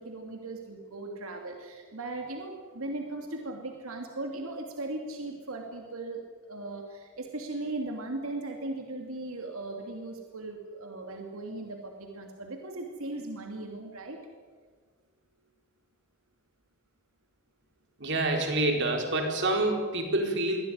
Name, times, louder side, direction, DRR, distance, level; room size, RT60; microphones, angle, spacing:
voice 1, 0.0-14.2, right 2 dB, 75° right, 2 dB, 2.7 m, -38 dB
voice 2, 18.0-20.6, right 2 dB, 55° right, 3 dB, 4.6 m, -27 dB
24.0 x 16.5 x 9.5 m, 1.5 s
head